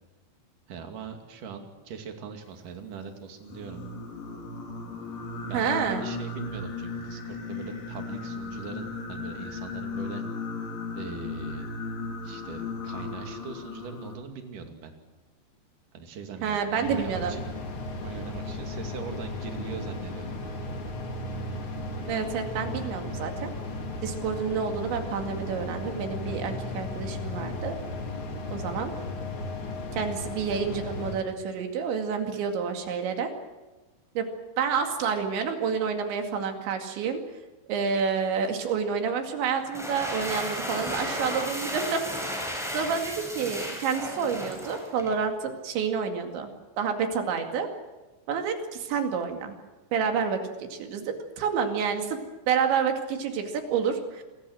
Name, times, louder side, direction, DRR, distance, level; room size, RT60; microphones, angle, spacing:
voice 1, 0.7-3.8 5.5-10.2 10.9-11.7 12.2-14.9 15.9-17.5 18.0-20.3, right 6 dB, 50° right, 4 dB, 3.5 m, -41 dB
Singing, 3.4-14.2, left 3 dB, 70° left, 6.5 m, -36 dB
voice 2, 5.5-6.0 16.4-17.4 22.1-23.5 24.0-27.8 28.5-29.0 29.9-33.3 34.2-34.3 34.6-37.2 37.7-42.0 42.7-46.5 46.8-47.7 48.3-49.6 49.9-52.2 52.5-54.2, right 6 dB, 70° right, 4 dB, 4.5 m, -29 dB
sound 1, 16.8-31.2, left 2 dB, 40° left, 2.2 m, -35 dB
sound 2, 39.6-45.2, equal, ahead, 6.8 m, -34 dB
27.5 x 21.5 x 6.4 m, 1.2 s
omnidirectional pair, 5.6 m